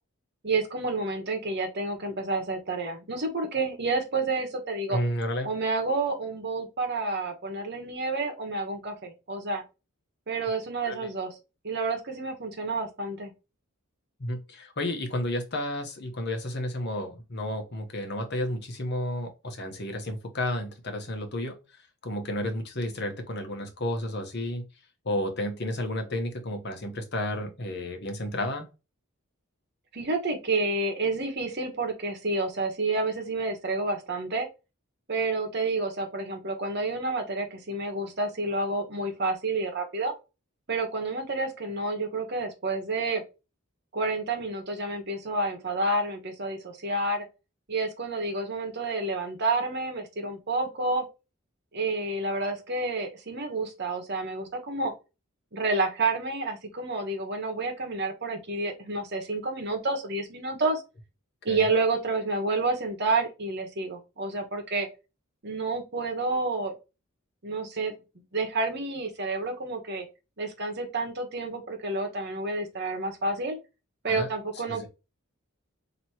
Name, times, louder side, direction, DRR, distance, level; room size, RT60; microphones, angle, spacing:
voice 1, 0.4-5.0 5.4-9.6 10.3-11.4 11.6-13.3 29.9-34.5 35.1-40.1 40.7-43.2 43.9-47.3 47.7-51.0 51.7-54.9 55.5-60.8 61.4-64.9 65.4-66.7 67.4-67.9 68.3-70.0 70.4-73.6 74.0-74.9, right 3 dB, 50° right, 3 dB, 1.2 m, -29 dB
voice 2, 4.9-5.5 10.8-11.1 14.2-21.6 22.0-24.6 25.0-28.6 61.5-61.6 74.1-74.3 74.7-74.9, left 1 dB, 50° left, 4 dB, 1.0 m, -32 dB
3.0 x 2.9 x 4.2 m, 0.28 s
head